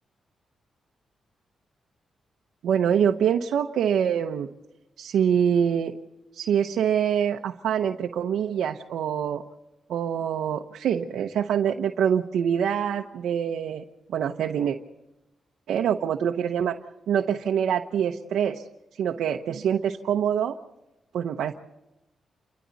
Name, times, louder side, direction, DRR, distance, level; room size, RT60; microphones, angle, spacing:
voice 1, 2.6-4.5 5.0-5.9 6.3-9.4 9.9-13.8 14.1-14.8 15.7-16.8 17.1-18.6 19.0-20.6 21.1-21.5, right 8 dB, 85° right, 3 dB, 1.0 m, -25 dB
29.0 x 24.5 x 4.2 m, 0.96 s
cardioid pair, 90°, 0 cm